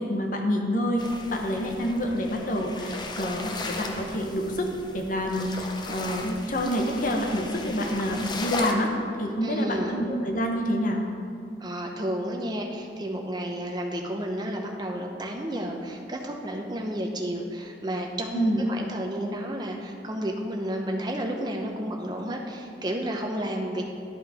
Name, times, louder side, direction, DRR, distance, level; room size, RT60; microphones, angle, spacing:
voice 1, 0.0-4.7 4.9-8.9 9.2-11.0 18.3-18.7, equal, 50° left, 2 dB, 1.0 m, -27 dB
sound 1, 1.0-8.7, left 2 dB, 25° left, 0.6 m, -36 dB
voice 2, 9.4-9.9 11.6-23.8, right 1 dB, 25° right, 1 dB, 0.8 m, -31 dB
11.0 x 5.5 x 4.9 m, 2.5 s
head